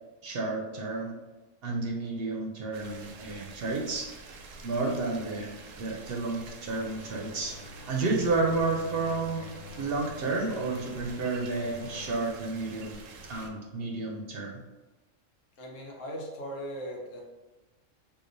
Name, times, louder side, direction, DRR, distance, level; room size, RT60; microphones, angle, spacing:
voice 1, 0.2-1.1 1.6-4.1 4.6-7.6 7.9-9.5 9.8-13.0 13.2-14.6, right 3 dB, 60° right, 0 dB, 0.7 m, -31 dB
sound 1, 2.7-13.5, right 4 dB, 90° right, 0.9 m, -48 dB
sound 2, 6.7-12.1, left 3 dB, 60° left, 0.8 m, -47 dB
voice 2, 15.6-17.2, equal, 90° left, -1 dB, 1.2 m, -38 dB
4.7 x 2.4 x 2.5 m, 1.2 s
omnidirectional pair, 1.3 m